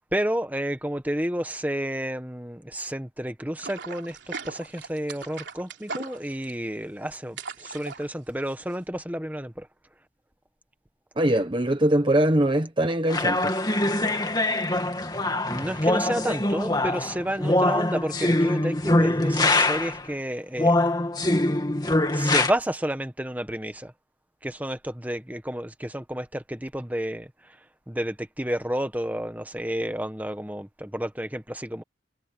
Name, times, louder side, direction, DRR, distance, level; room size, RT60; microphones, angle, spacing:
voice 1, 0.0-9.7 15.5-20.8 22.1-23.9 24.4-27.6 27.9-31.8, equal, 10° right, 1.4 m, -31 dB
sound 1, 3.6-8.8, right 4 dB, 70° right, 3.4 m, -39 dB
voice 2, 11.2-13.5, right 1 dB, 25° right, 1.0 m, -22 dB
sound 2, 13.1-20.1 20.6-22.5, left 2 dB, 20° left, 2.5 m, -23 dB
head